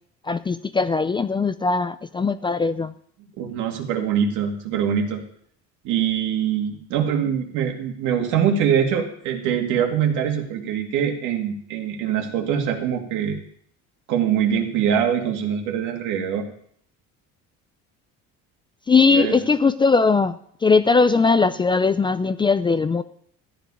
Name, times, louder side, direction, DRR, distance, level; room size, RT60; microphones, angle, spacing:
voice 1, 0.2-2.9 18.9-23.0, left 4 dB, 15° left, 12 dB, 0.4 m, -19 dB
voice 2, 3.4-5.2 5.8-13.4 14.1-16.5 19.1-19.4, right 8 dB, 75° right, 3 dB, 2.3 m, -23 dB
13.5 x 10.0 x 4.9 m, 0.64 s
cardioid pair, 135°, 30 cm